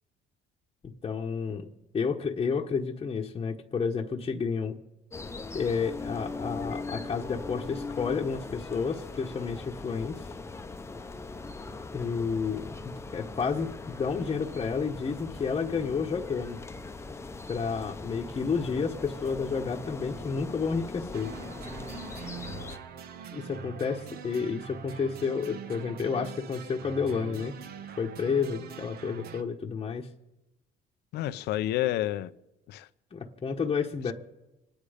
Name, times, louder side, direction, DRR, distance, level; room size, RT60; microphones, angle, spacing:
voice 1, 1.0-4.7 5.5-10.3 11.9-16.6 17.5-21.3 23.3-27.5 28.0-30.1 33.1-34.1, left 5 dB, 30° left, 1.1 m, -31 dB
sound 1, 5.1-22.8, left 3 dB, 15° left, 0.9 m, -40 dB
sound 2, 21.1-29.4, right 7 dB, 65° right, 1.2 m, -43 dB
voice 2, 31.1-32.3 32.7-32.9 34.1-34.2, left 14 dB, 80° left, 0.7 m, -30 dB
26.5 x 10.0 x 5.1 m
cardioid pair, 110°, 17 cm